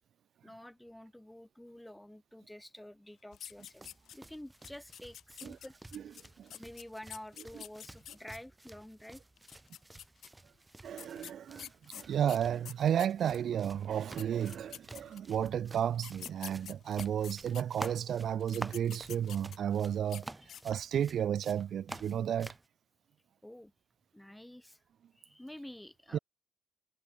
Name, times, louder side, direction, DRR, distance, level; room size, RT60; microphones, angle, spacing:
voice 1, 0.4-5.7 6.5-9.2 20.4-20.6 23.4-23.7 24.1-24.8 25.2-26.2, left 1 dB, 5° left, 2.0 m, -49 dB
sound 1, 3.3-4.3 4.6-8.4 9.4-10.3 11.0-13.4 13.9-14.0 14.2-15.4 15.9-17.9 18.4-19.7 20.0-20.2 20.5-20.9, left 10 dB, 70° left, 0.5 m, -48 dB
sound 2, 3.5-22.7, right 2 dB, 15° right, 2.1 m, -50 dB
voice 2, 10.8-20.3 20.6-22.5 26.1-26.2, right 9 dB, 65° right, 0.4 m, -32 dB
cardioid pair, 90°, 0 cm